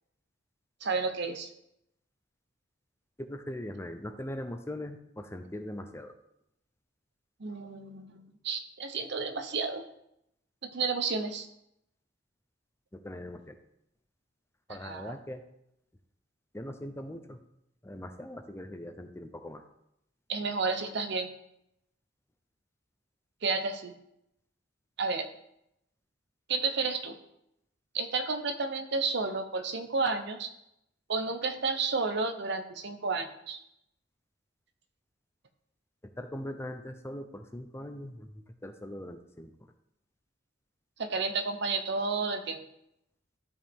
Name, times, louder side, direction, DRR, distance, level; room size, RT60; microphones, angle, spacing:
voice 1, 0.8-1.5 7.4-9.8 10.7-11.5 14.8-15.2 20.3-21.3 23.4-23.9 25.0-25.3 26.5-27.1 27.9-30.5 31.1-33.6 41.0-42.6, right 4 dB, 60° right, 8 dB, 0.8 m, -31 dB
voice 2, 3.2-6.1 12.9-13.6 14.7-15.4 16.5-17.4 17.8-19.6 36.2-39.5, left 1 dB, 15° left, 7 dB, 0.6 m, -41 dB
12.5 x 4.9 x 3.6 m, 0.79 s
head